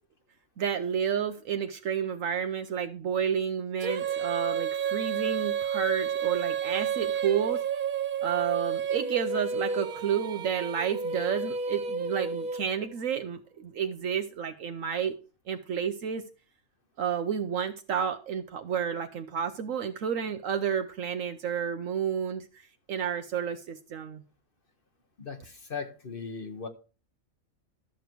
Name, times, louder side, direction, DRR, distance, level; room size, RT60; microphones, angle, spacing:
voice 1, 0.6-7.6 8.2-15.1 15.5-16.2 17.0-22.4 22.9-24.2, right 7 dB, 70° right, 1.1 m, -31 dB
Female singing, 3.8-12.9, right 7 dB, 50° right, 0.7 m, -31 dB
voice 2, 25.2-26.7, left 5 dB, 45° left, 1.2 m, -38 dB
13.0 x 6.7 x 4.5 m
omnidirectional pair, 1.4 m